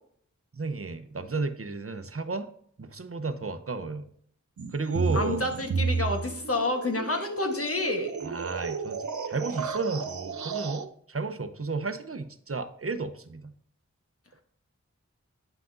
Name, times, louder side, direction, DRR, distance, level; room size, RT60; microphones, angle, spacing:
voice 1, 0.5-2.5 2.8-4.0 4.7-5.4 8.2-13.5, right 3 dB, 50° right, 10 dB, 0.7 m, -33 dB
sound 1, 4.6-10.9, right 4 dB, 80° right, 0.5 m, -32 dB
voice 2, 5.1-8.1, left 2 dB, 50° left, 4 dB, 1.3 m, -29 dB
9.0 x 5.7 x 2.6 m, 0.64 s
wide cardioid pair, 40°, 29 cm